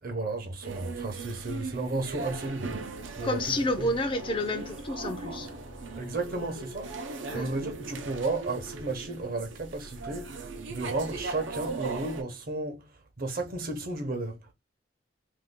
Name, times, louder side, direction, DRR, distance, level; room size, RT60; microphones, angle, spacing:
voice 1, 0.0-3.9 5.9-7.0 7.3-14.5, right 2 dB, 50° right, 0.8 m, -34 dB
sound 1, 0.6-12.2, right 3 dB, 85° right, 0.6 m, -39 dB
sound 2, 2.9-9.1, left 5 dB, 75° left, 0.6 m, -50 dB
voice 2, 3.2-5.5 7.3-7.5, left 1 dB, 30° left, 0.4 m, -29 dB
2.6 x 2.2 x 3.5 m
head